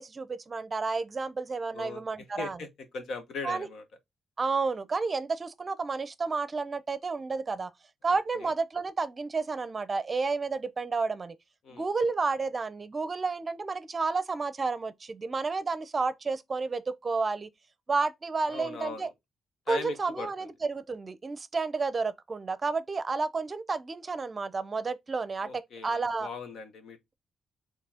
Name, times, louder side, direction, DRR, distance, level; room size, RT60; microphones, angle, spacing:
voice 1, 0.0-2.6 3.4-3.7 4.4-7.7 8.0-11.3 11.7-17.5 17.9-19.1 19.7-26.3, right 4 dB, 35° right, 0.6 m, -31 dB
voice 2, 1.7-2.7 2.9-3.8 8.1-8.5 11.6-11.9 18.5-19.1 19.7-20.5 25.4-27.0, left 4 dB, 70° left, 1.3 m, -40 dB
4.7 x 3.1 x 3.6 m
cardioid pair, 85°, 0 cm